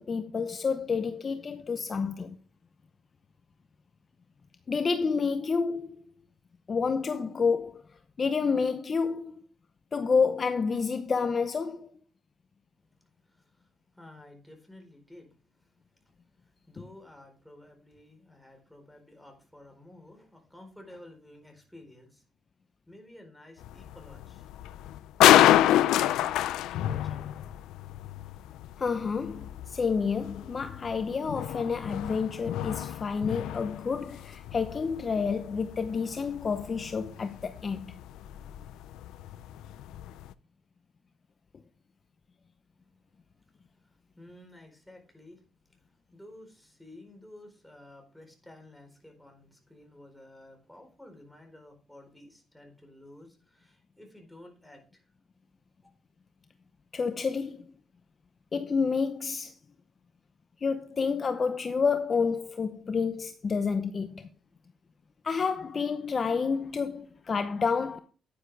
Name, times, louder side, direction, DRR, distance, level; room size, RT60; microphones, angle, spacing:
voice 1, 0.0-2.4 4.7-6.0 6.7-7.8 8.2-9.3 9.9-11.9 28.8-37.8 56.9-57.6 58.5-59.6 60.6-64.3 65.2-68.0, left 5 dB, 40° left, 0.8 m, -29 dB
voice 2, 12.8-22.3 22.9-24.5 26.7-27.6 42.8-42.9 43.7-55.1 55.8-55.9, left 1 dB, 5° left, 4.1 m, -53 dB
sound 1, 23.6-40.3, left 13 dB, 90° left, 0.5 m, -28 dB
10.0 x 9.8 x 3.4 m
cardioid pair, 90°, 0 cm